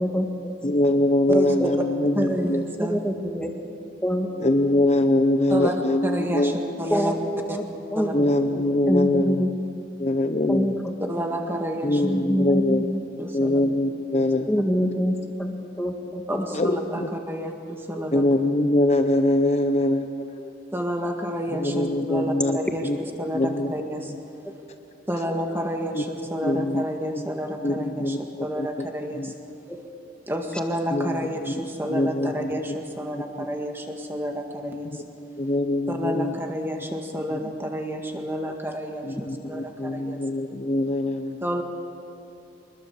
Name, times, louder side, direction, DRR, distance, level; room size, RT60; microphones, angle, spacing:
voice 1, 0.0-0.5 1.6-1.7 2.8-3.5 4.0-4.3 6.9-7.1 7.5-7.6 7.9-9.5 10.5-10.9 12.0-12.8 14.5-16.4 29.7-29.8, equal, 5° left, 3 dB, 1.8 m, -26 dB
voice 2, 0.6-2.6 4.4-6.6 8.1-9.4 10.0-10.8 11.8-12.9 13.3-14.5 16.5-17.1 18.1-20.5 21.5-22.6 22.8-23.0 23.3-23.7 24.1-24.2 25.9-26.0 26.4-26.8 27.2-27.3 27.6-28.9 29.1-29.3 30.9-32.8 33.1-33.5 35.4-36.3 37.3-37.4 39.0-41.4, left 1 dB, 35° left, 6 dB, 0.8 m, -23 dB
voice 3, 2.1-3.0 5.5-5.7 6.0-7.1 7.5-7.6 7.9-8.1 11.1-12.0 13.2-13.6 14.1-14.3 16.3-18.2 20.7-22.8 23.2-24.1 25.1-29.3 30.3-35.0 35.9-40.2 41.4-41.6, equal, 10° right, 3 dB, 1.8 m, -30 dB
24.0 x 20.5 x 7.3 m, 2.6 s
head